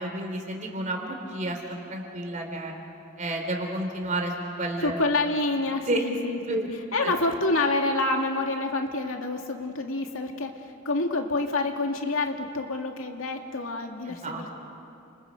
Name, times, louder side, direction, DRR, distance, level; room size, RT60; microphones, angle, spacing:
voice 1, 0.0-1.6 1.9-2.7 3.2-5.0 5.9-6.0 6.5-6.7 7.0-7.1 14.1-14.5, right 1 dB, 40° right, 2 dB, 3.6 m, -30 dB
voice 2, 4.8-14.5, left 2 dB, 90° left, 3 dB, 2.2 m, -28 dB
29.5 x 27.5 x 5.4 m, 2.7 s
head